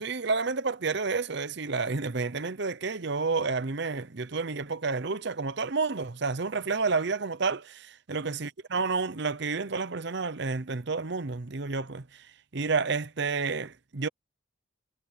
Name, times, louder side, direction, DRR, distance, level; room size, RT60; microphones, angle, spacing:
voice 1, 0.0-12.3 12.5-14.1, right 4 dB, 55° right, 0.8 m, -30 dB
head